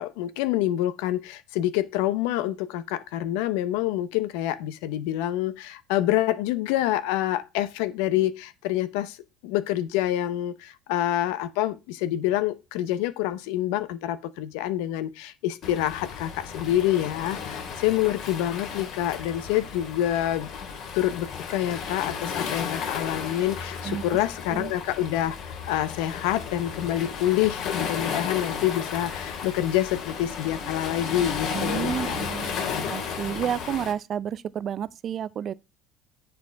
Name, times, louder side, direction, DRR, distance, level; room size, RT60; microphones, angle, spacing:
voice 1, 0.0-9.2 9.4-20.5 20.9-25.4 25.7-32.1, left 13 dB, 85° left, 0.8 m, -27 dB
Waves surf, 15.6-33.9, left 6 dB, 60° left, 2.3 m, -34 dB
voice 2, 31.5-35.5, right 9 dB, 45° right, 0.5 m, -31 dB
7.5 x 6.0 x 4.6 m
supercardioid pair, 105°, 0 cm